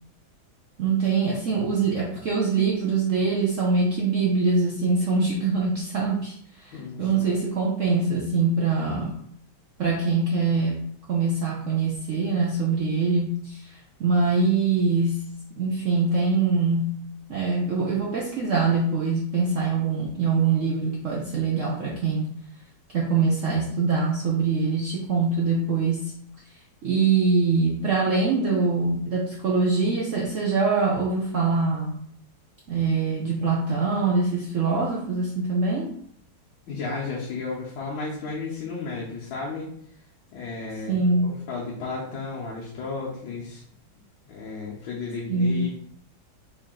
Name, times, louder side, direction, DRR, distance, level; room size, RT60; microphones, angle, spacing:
voice 1, 0.8-9.2 9.8-15.3 15.6-17.0 17.3-22.3 22.9-26.1 26.8-32.0 32.7-35.9 40.9-41.3 45.3-45.7, right 4 dB, 70° right, -3 dB, 0.7 m, -24 dB
voice 2, 6.7-7.3 36.7-39.7 40.3-43.6 44.3-45.7, left 4 dB, 80° left, -6 dB, 1.7 m, -33 dB
4.8 x 2.8 x 3.7 m, 0.63 s
omnidirectional pair, 2.2 m